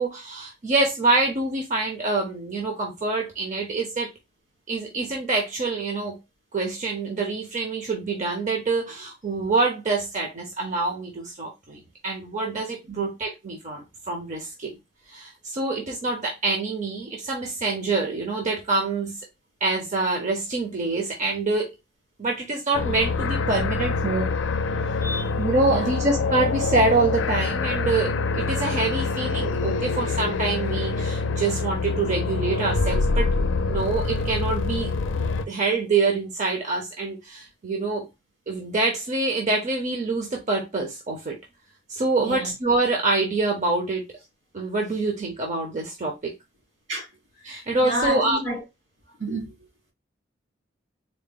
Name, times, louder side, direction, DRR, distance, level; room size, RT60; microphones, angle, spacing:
voice 1, 0.0-4.1 4.7-6.2 6.5-14.8 15.1-19.2 19.6-21.7 22.2-24.3 25.4-33.3 33.6-34.9 35.5-38.1 38.5-41.4 41.9-44.0 44.5-46.3 47.4-48.4, right 3 dB, 40° right, 0.7 m, -26 dB
sound 1, 22.7-35.4, left 3 dB, 70° left, 0.4 m, -25 dB
voice 2, 25.0-25.3 25.7-25.9 42.2-42.5 46.9-47.1 47.4-48.6 49.2-49.7, right 1 dB, 70° right, 2.1 m, -31 dB
3.9 x 2.1 x 3.6 m
head